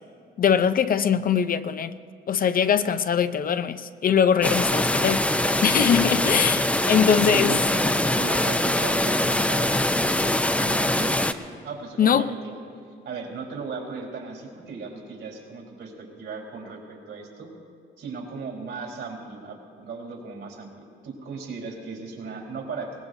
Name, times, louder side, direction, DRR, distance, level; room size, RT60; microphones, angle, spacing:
voice 1, 0.4-1.9 2.3-5.3 5.6-7.6 12.0-12.3, left 7 dB, 45° left, 0.6 m, -22 dB
sound 1, 4.4-11.3, left 1 dB, 5° left, 0.6 m, -23 dB
voice 2, 6.9-11.2 11.6-12.4 13.0-17.5 18.0-22.9, right 4 dB, 70° right, 4.2 m, -36 dB
22.0 x 19.0 x 2.7 m
cardioid pair, 90°, 20 cm